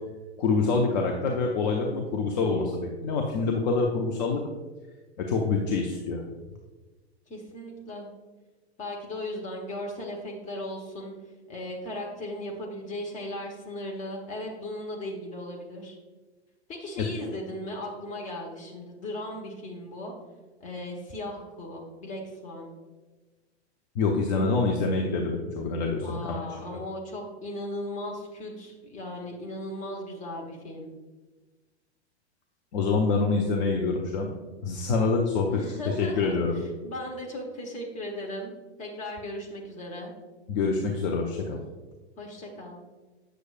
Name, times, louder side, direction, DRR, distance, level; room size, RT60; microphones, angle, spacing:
voice 1, 0.4-4.4 5.2-6.2 23.9-26.7 32.7-34.3 34.6-35.5 35.9-36.6 40.5-41.6, left 4 dB, 40° left, 1 dB, 0.7 m, -26 dB
voice 2, 7.3-8.1 8.8-11.1 11.5-16.0 16.7-20.1 20.6-22.7 26.0-30.9 35.5-38.5 38.8-40.1 42.2-42.8, left 1 dB, 20° left, 0 dB, 1.2 m, -37 dB
8.0 x 6.4 x 2.5 m, 1.2 s
figure-of-eight pair, 100°, 34 cm